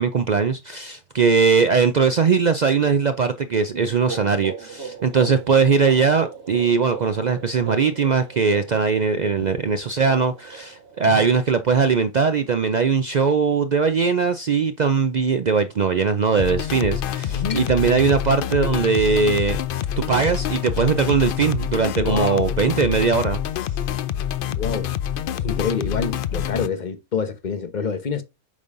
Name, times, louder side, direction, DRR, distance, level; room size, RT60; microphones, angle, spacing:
voice 1, 0.0-19.6 20.0-23.4, right 5 dB, 85° right, 0.3 m, -20 dB
sound 1, 3.7-11.4, right 6 dB, 45° right, 1.5 m, -38 dB
sound 2, 16.4-26.7, left 10 dB, 70° left, 0.5 m, -26 dB
voice 2, 17.3-17.6 22.0-22.6 24.5-24.9 25.3-28.2, left 5 dB, 35° left, 1.0 m, -27 dB
8.3 x 5.4 x 2.5 m
omnidirectional pair, 1.5 m